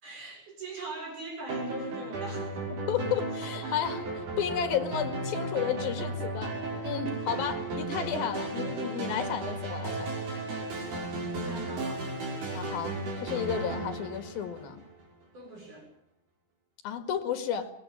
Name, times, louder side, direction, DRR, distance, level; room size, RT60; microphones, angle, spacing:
voice 1, 0.0-2.8 3.6-3.8 7.4-7.6 11.3-12.1 15.3-15.9, right 2 dB, 50° right, 1 dB, 8.1 m, -42 dB
sound 1, 1.5-15.0, right 2 dB, 80° right, 7.2 m, -35 dB
voice 2, 2.9-4.1 4.4-10.2 12.5-14.8 16.8-17.7, left 8 dB, 75° left, 8 dB, 3.7 m, -32 dB
23.0 x 20.0 x 8.9 m, 0.68 s
omnidirectional pair, 4.4 m